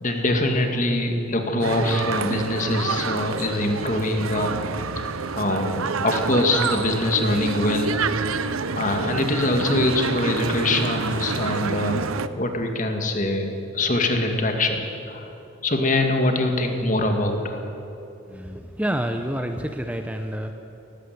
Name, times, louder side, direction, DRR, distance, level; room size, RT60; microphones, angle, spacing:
voice 1, 0.0-4.5 5.3-8.0 8.4-12.1 12.4-15.3 15.6-17.6, left 2 dB, 35° left, 4 dB, 2.2 m, -23 dB
sound 1, 1.6-12.3, right 4 dB, 90° right, 0.8 m, -28 dB
voice 2, 18.3-20.5, right 1 dB, 5° right, 6 dB, 0.7 m, -28 dB
18.0 x 16.0 x 9.5 m, 2.9 s
head